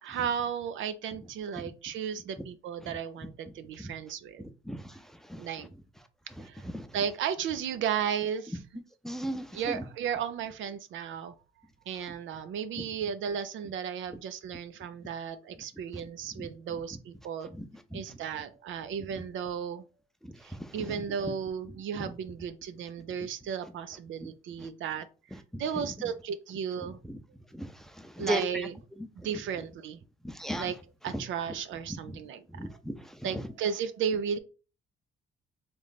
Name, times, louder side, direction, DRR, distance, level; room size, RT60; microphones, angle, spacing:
voice 1, 0.0-4.4 5.4-5.7 6.4-6.7 6.9-8.6 9.5-11.3 11.9-17.5 17.9-19.9 20.4-27.0 28.2-28.7 29.2-30.0 30.6-30.8 31.0-32.5 33.2-34.4, right 7 dB, 75° right, 0.6 m, -34 dB
voice 2, 9.0-9.8 16.4-16.5 17.6-17.7 17.9-18.0 25.5-25.6 27.5-27.7 28.0-28.4 30.2-30.7 32.6-32.9, equal, ahead, 0.6 m, -35 dB
3.4 x 3.1 x 4.0 m
cardioid pair, 90°, 20 cm